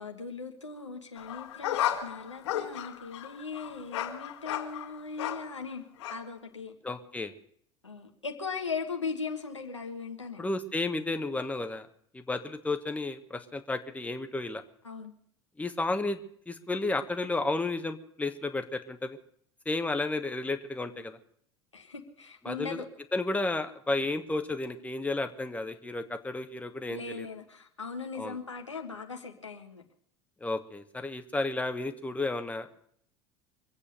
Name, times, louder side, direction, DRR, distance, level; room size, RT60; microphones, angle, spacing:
voice 1, 0.0-5.8 6.1-6.7 7.8-10.5 14.8-15.1 21.7-22.8 26.9-29.8, left 5 dB, 90° left, 3 dB, 1.5 m, -39 dB
sound 1, 1.2-5.6 6.0-6.2, left 11 dB, 65° left, 2.3 m, -34 dB
voice 2, 6.8-7.3 10.4-11.9 12.1-14.6 15.6-16.2 16.5-19.2 19.6-21.2 22.4-22.8 23.1-27.3 28.2-28.4 30.4-32.7, left 2 dB, 10° left, 7 dB, 1.4 m, -32 dB
24.0 x 8.5 x 6.8 m, 0.63 s
figure-of-eight pair, 75°, 15 cm